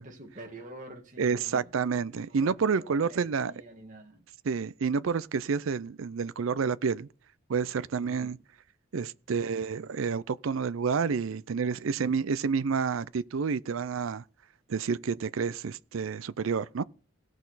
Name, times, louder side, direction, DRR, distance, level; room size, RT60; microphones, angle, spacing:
voice 1, 0.0-1.7 2.3-4.3 8.0-8.4 11.1-11.4 11.7-12.2, right 1 dB, 40° right, 2.1 m, -47 dB
voice 2, 1.2-3.5 4.5-7.1 7.5-8.4 8.9-14.2 14.7-16.8, right 5 dB, 75° right, 0.5 m, -29 dB
17.5 x 6.3 x 4.0 m
head